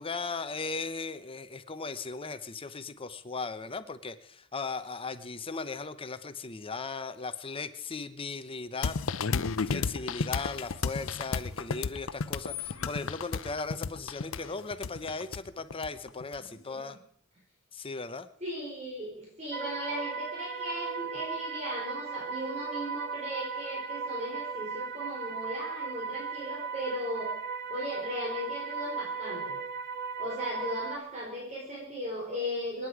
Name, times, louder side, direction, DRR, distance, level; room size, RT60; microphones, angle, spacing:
voice 1, 0.0-9.0 9.7-17.0 17.7-18.3, left 4 dB, 25° left, 11 dB, 0.8 m, -37 dB
sound 1, 8.8-16.4, left 5 dB, 70° left, 0.7 m, -32 dB
voice 2, 16.4-16.8 18.4-27.3 27.7-29.5 30.2-32.9, equal, 35° right, -4 dB, 4.6 m, -37 dB
sound 2, 19.5-31.0, right 5 dB, 50° right, 0.8 m, -37 dB
27.0 x 9.8 x 4.9 m, 0.63 s
head